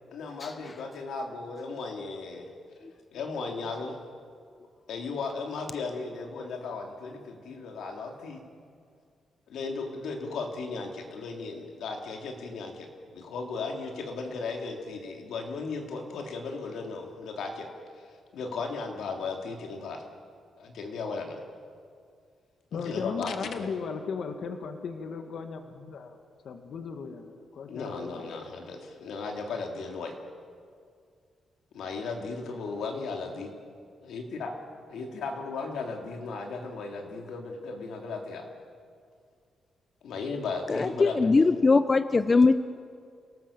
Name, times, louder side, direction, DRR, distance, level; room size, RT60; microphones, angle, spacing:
voice 1, 0.1-2.5 3.1-4.0 4.9-8.4 9.5-12.9 13.1-17.7 17.9-20.0 20.6-21.4 22.7-23.7 27.7-30.1 31.7-33.5 34.0-34.5 34.9-38.5 40.0-41.6, left 4 dB, 85° left, 2 dB, 3.3 m, -36 dB
voice 2, 22.7-26.2 26.4-28.3, left 5 dB, 65° left, 6 dB, 1.9 m, -36 dB
voice 3, 40.7-42.5, left 3 dB, 25° left, 11 dB, 0.6 m, -21 dB
28.0 x 18.5 x 7.4 m, 2.2 s
cardioid pair, 140°, 0 cm